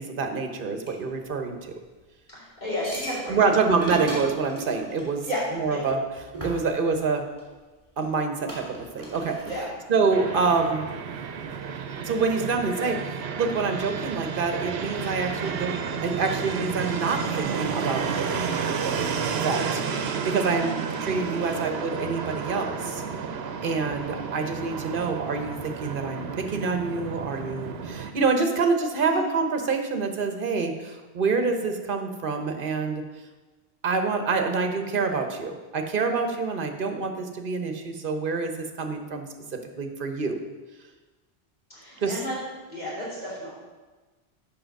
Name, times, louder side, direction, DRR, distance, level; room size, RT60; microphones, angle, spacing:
voice 1, 0.0-1.7 3.3-5.3 5.5-6.0 6.4-7.2 8.0-9.4 9.9-10.9 12.0-18.1 19.3-23.0 23.6-33.0 33.8-39.3 39.5-40.4 42.0-42.2, right 4 dB, 60° right, 5 dB, 1.1 m, -26 dB
sound 1, 0.9-1.0 2.8-5.5 6.2-7.4 8.0-8.1 8.5-9.6, right 2 dB, 30° right, 2.5 m, -36 dB
voice 2, 2.3-3.5 5.3-5.4 5.7-5.8 9.4-9.7 29.0-29.2 41.7-42.3 42.7-43.5, left 1 dB, 45° left, -8 dB, 3.1 m, -32 dB
Fixed-wing aircraft airplane, 10.1-28.1, right 6 dB, 80° right, 0.9 m, -31 dB
7.7 x 5.3 x 6.4 m, 1.3 s
omnidirectional pair, 1.0 m